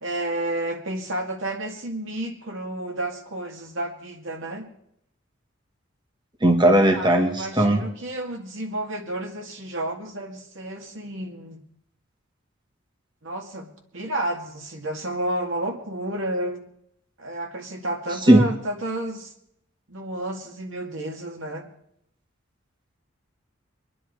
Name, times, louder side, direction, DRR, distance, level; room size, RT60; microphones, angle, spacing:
voice 1, 0.0-4.7 6.9-11.6 13.2-16.6 17.2-19.3 19.9-21.7, right 1 dB, 75° right, 3 dB, 2.2 m, -31 dB
voice 2, 6.4-7.8 18.3-18.4, right 1 dB, 20° right, 3 dB, 1.3 m, -17 dB
24.5 x 10.0 x 4.7 m, 0.73 s
head